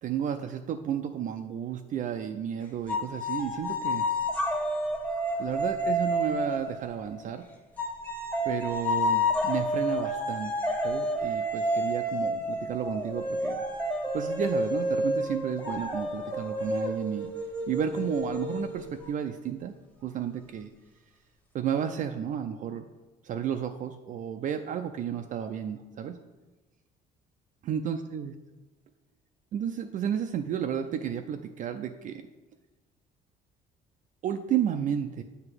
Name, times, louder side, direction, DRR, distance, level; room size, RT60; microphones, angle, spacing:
voice 1, 0.0-4.1 5.4-7.5 8.4-10.5 10.8-13.6 14.1-17.3 17.7-19.7 20.0-20.7 21.5-22.9 23.2-26.2 27.7-28.3 29.5-32.2 34.2-35.2, right 9 dB, 50° right, 6 dB, 0.4 m, -32 dB
sound 1, 2.9-7.2 7.8-19.1, equal, 10° left, 1.2 m, -30 dB
7.7 x 2.9 x 6.0 m, 1.1 s
cardioid pair, 110°, 17 cm